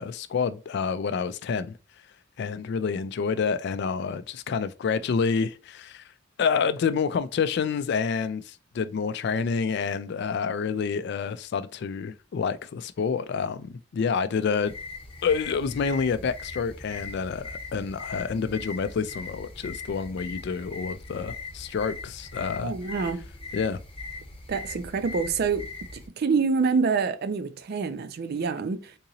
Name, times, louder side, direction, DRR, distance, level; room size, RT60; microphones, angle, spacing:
voice 1, 0.0-1.8 2.4-6.1 6.4-14.7 15.2-22.7 23.5-23.8, left 5 dB, 60° left, 0.3 m, -28 dB
sound 1, 14.6-26.1, left 3 dB, 30° left, 0.9 m, -40 dB
voice 2, 22.6-23.3 24.5-25.7 26.2-28.9, right 5 dB, 55° right, 0.4 m, -26 dB
3.7 x 2.9 x 2.7 m
head